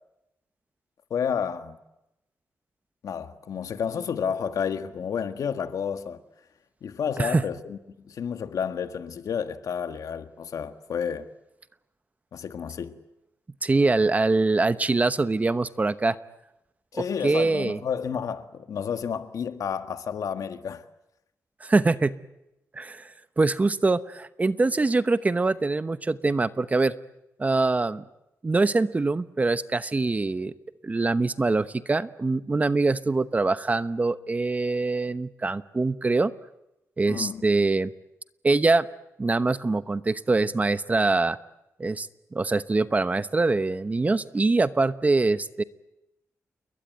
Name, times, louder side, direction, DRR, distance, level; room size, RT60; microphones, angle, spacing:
voice 1, 1.1-1.8 3.0-6.2 6.8-7.8 8.0-11.3 12.3-13.0 16.9-20.8 37.1-37.4, left 7 dB, 85° left, 1.7 m, -30 dB
voice 2, 13.6-16.2 16.9-17.8 21.6-22.2 22.7-23.1 23.4-26.9 27.4-28.0 28.4-30.5 30.8-36.3 37.0-37.9 38.4-38.9 39.2-41.4 41.8-45.6, right 3 dB, 25° right, 1.0 m, -24 dB
29.5 x 22.0 x 9.3 m
wide cardioid pair, 125°, 6 cm